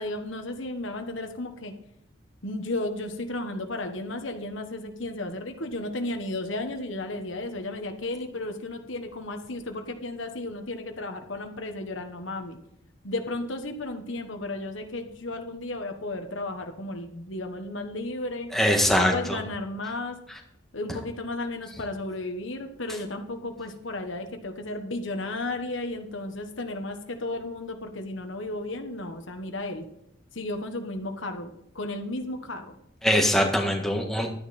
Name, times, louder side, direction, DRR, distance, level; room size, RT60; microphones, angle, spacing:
voice 1, 0.0-1.7 2.4-12.6 13.0-18.5 18.9-20.2 20.7-29.9 30.3-32.8, left 2 dB, 75° left, 5 dB, 1.3 m, -34 dB
voice 2, 18.5-19.4 33.0-34.3, equal, ahead, 2 dB, 1.7 m, -22 dB
12.0 x 9.6 x 4.3 m, 0.78 s
head